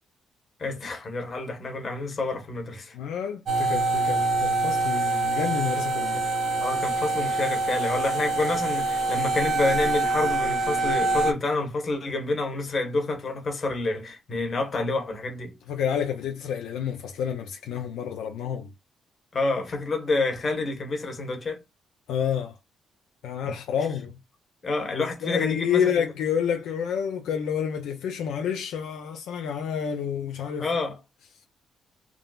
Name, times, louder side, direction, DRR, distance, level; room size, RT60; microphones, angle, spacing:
voice 1, 0.6-3.0 6.6-15.5 19.3-21.6 23.4-23.5 24.6-26.0 30.6-31.0, left 3 dB, 40° left, 1.1 m, -28 dB
voice 2, 2.9-6.2 15.7-18.7 22.1-22.6 23.2-24.2 24.9-30.7, left 8 dB, 85° left, 0.4 m, -29 dB
sound 1, 3.5-11.3, right 2 dB, 55° right, 0.6 m, -25 dB
3.6 x 2.0 x 2.3 m
cardioid pair, 90°, 0 cm